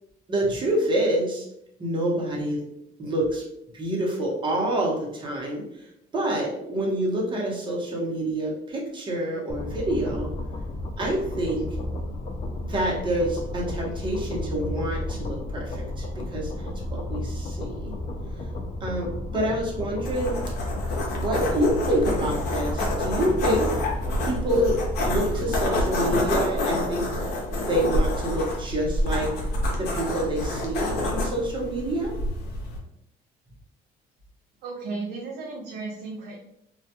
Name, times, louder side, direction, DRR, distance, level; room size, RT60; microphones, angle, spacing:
voice 1, 0.3-1.5 1.8-2.6 3.0-3.4 3.7-5.6 6.1-10.3 11.0-11.7 12.6-17.9 18.8-20.4 21.1-23.7 24.2-24.7 25.0-27.1 27.7-29.3 29.8-32.1, right 1 dB, 30° right, -2 dB, 0.8 m, -27 dB
sound 1, 9.5-25.6, left 1 dB, 40° left, 0.3 m, -33 dB
sound 2, 20.0-32.8, left 1 dB, 75° left, 0.7 m, -28 dB
voice 2, 34.6-36.4, right 3 dB, 85° right, -2 dB, 0.5 m, -34 dB
2.3 x 2.2 x 2.8 m, 0.79 s
cardioid pair, 110°, 17 cm